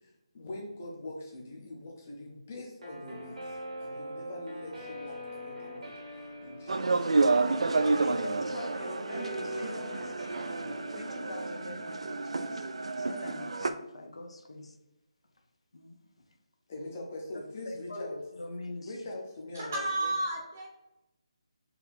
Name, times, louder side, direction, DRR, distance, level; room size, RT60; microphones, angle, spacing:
voice 1, 0.0-5.9 6.4-7.3 7.9-8.5 16.7-18.2 18.8-19.8, left 2 dB, 20° left, -1 dB, 0.6 m, -43 dB
Guitar, 2.8-11.5, equal, 85° right, 1.4 m, -42 dB
sound 1, 6.7-13.7, right 3 dB, 70° right, 0.4 m, -30 dB
voice 2, 8.0-12.7 13.0-14.8 15.7-16.4 17.6-19.1, left 2 dB, 70° left, 5 dB, 0.7 m, -44 dB
voice 3, 19.5-20.7, right 1 dB, 25° right, -1 dB, 0.7 m, -32 dB
4.0 x 2.7 x 4.2 m, 0.96 s
hypercardioid pair, 180°, 3 cm